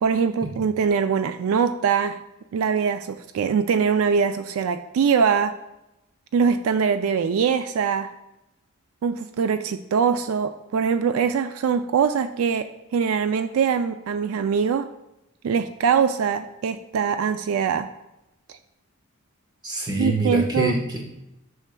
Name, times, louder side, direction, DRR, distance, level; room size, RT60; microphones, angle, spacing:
voice 1, 0.0-2.2 2.5-5.5 6.3-8.1 9.0-14.9 15.4-17.9 20.0-20.7, right 6 dB, 70° right, 10 dB, 0.3 m, -22 dB
voice 2, 19.6-21.1, right 1 dB, 20° right, 1 dB, 1.2 m, -25 dB
10.5 x 6.3 x 2.2 m, 0.90 s
head